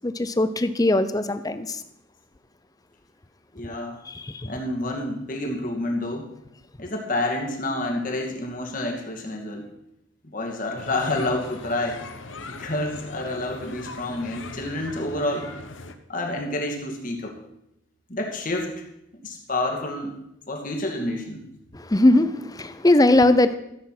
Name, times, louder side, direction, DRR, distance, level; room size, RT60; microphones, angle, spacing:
voice 1, 0.0-1.8 4.1-4.5 21.7-23.6, left 1 dB, 20° left, 12 dB, 0.7 m, -20 dB
voice 2, 3.5-4.0 4.4-6.3 6.8-9.7 10.2-12.0 12.5-15.5 16.1-17.4 18.1-18.8 19.2-20.2 20.5-21.5, left 1 dB, 45° left, 2 dB, 2.4 m, -29 dB
sound 1, 10.8-16.0, left 3 dB, 75° left, 1.1 m, -40 dB
14.0 x 8.2 x 6.0 m, 0.81 s
head